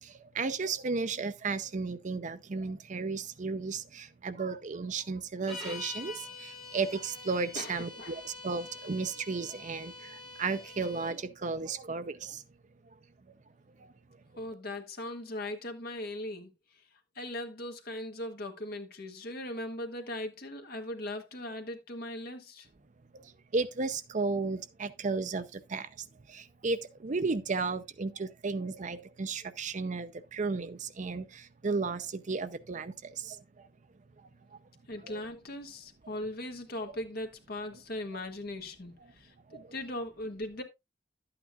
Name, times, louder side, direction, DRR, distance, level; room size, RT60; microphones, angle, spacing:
voice 1, 0.0-12.4 13.3-13.4 13.8-13.9 23.1-33.7 35.0-35.2 39.5-39.7, right 4 dB, 40° right, 0.6 m, -34 dB
sound 1, 5.4-11.2, left 3 dB, ahead, 4.5 m, -45 dB
voice 2, 7.5-8.1 14.4-16.5 17.1-22.7 34.9-40.6, left 1 dB, 55° left, 1.6 m, -39 dB
12.0 x 8.8 x 2.4 m
head